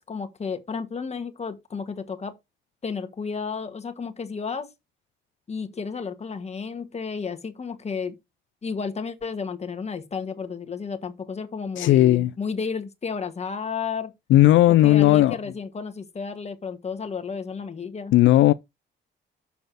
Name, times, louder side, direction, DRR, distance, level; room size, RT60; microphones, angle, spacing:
voice 1, 0.0-2.3 2.8-4.7 5.5-8.1 8.6-14.1 14.8-18.1, left 5 dB, 35° left, 1.5 m, -32 dB
voice 2, 11.8-12.3 14.3-15.4 18.1-18.5, left 14 dB, 75° left, 0.4 m, -16 dB
6.8 x 4.1 x 6.3 m
cardioid pair, 90°, 20 cm